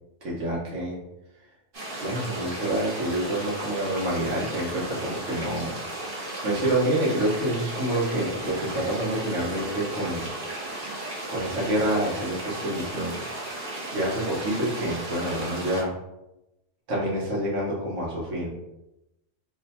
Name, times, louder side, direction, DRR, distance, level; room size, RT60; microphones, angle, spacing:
voice 1, 0.2-1.0 2.0-5.7 6.4-10.3 11.3-13.1 13.4-13.6 13.9-15.9 16.9-18.5, right 1 dB, 75° right, -4 dB, 1.3 m, -27 dB
sound 1, 1.7-15.8, right 1 dB, 50° right, 1.1 m, -35 dB
3.2 x 2.1 x 4.0 m, 0.91 s
omnidirectional pair, 1.3 m